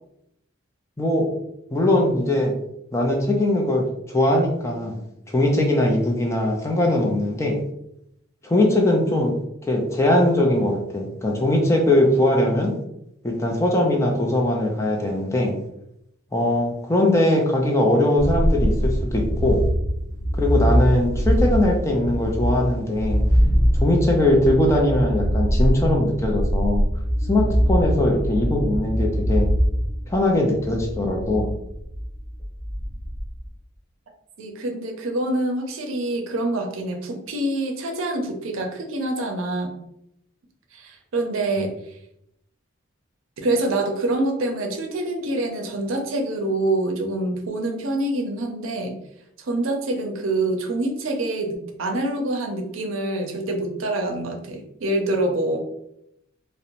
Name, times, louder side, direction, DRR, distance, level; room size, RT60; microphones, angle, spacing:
voice 1, 1.7-2.6 2.9-5.0 5.3-7.6 8.4-9.3 9.7-12.7 13.2-15.6 16.3-19.6 20.4-23.2 23.7-26.8 27.3-29.5 30.1-31.5, left 1 dB, 15° left, 0 dB, 0.4 m, -21 dB
sound 1, 18.2-33.4, equal, 20° right, 1.2 m, -23 dB
voice 2, 34.4-39.8 40.7-41.7 43.4-49.0 49.4-55.6, right 2 dB, 80° right, 3 dB, 0.5 m, -26 dB
2.5 x 2.0 x 2.9 m, 0.78 s
head